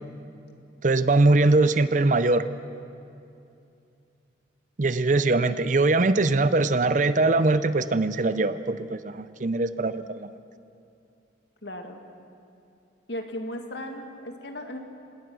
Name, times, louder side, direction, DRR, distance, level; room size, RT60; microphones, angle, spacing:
voice 1, 0.8-2.5 4.8-10.3, right 2 dB, 45° right, 13 dB, 0.6 m, -22 dB
voice 2, 11.6-12.0 13.1-14.8, left 1 dB, 70° left, 4 dB, 2.0 m, -36 dB
26.5 x 18.5 x 6.3 m, 2.6 s
head